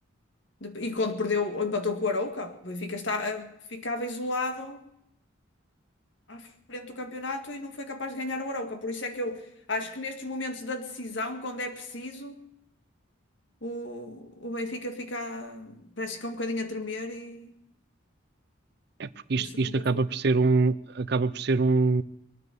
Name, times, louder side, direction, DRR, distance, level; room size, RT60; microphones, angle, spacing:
voice 1, 0.6-4.8 6.3-12.4 13.6-17.5 19.4-20.0, left 2 dB, 65° left, 6 dB, 2.0 m, -33 dB
voice 2, 19.0-22.0, right 3 dB, 55° right, 15 dB, 0.6 m, -24 dB
22.0 x 9.5 x 6.9 m, 0.79 s
head